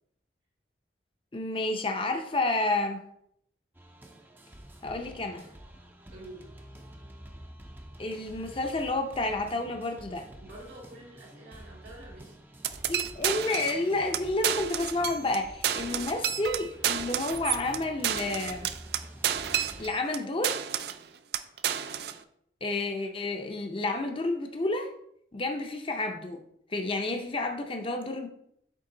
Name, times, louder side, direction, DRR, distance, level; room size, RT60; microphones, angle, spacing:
voice 1, 1.3-3.0 4.8-5.5 8.0-10.3 12.9-18.7 19.8-20.6 22.6-24.9 25.3-26.4 26.7-28.3, left 2 dB, 30° left, 4 dB, 0.6 m, -30 dB
sound 1, 3.7-20.0, right 1 dB, 10° right, 0.5 m, -49 dB
voice 2, 6.1-6.5 10.4-12.6 15.8-16.1, right 1 dB, 85° right, -3 dB, 2.5 m, -48 dB
sound 2, 12.6-13.8 14.1-14.2 14.4-15.4 15.6-20.2 20.4-21.0 21.3-22.2, right 9 dB, 60° right, 0.4 m, -30 dB
8.4 x 3.6 x 3.8 m, 0.71 s
head